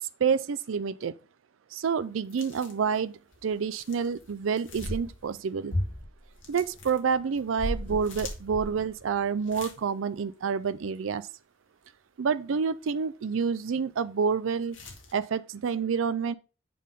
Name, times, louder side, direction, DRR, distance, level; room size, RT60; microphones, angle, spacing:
voice 1, 0.0-1.1 1.7-3.1 3.4-5.7 6.5-11.3 12.2-14.8 15.1-16.3, right 6 dB, 85° right, 0.4 m, -28 dB
sound 1, 2.3-3.0 3.3-5.4 5.7-9.8 10.2-10.3 14.7-15.1, equal, 75° left, 2.0 m, -37 dB
8.5 x 3.7 x 5.3 m
head